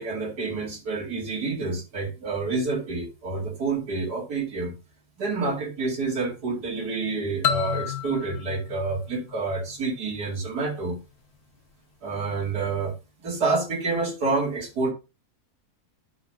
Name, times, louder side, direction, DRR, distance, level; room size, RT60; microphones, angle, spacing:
voice 1, 0.0-4.7 5.2-11.0 12.0-12.9 13.2-14.9, right 3 dB, 90° right, 0 dB, 2.9 m, -28 dB
sound 1, 7.4-10.1, left 9 dB, 75° left, 1.2 m, -31 dB
9.9 x 3.7 x 5.4 m, 0.29 s
omnidirectional pair, 1.6 m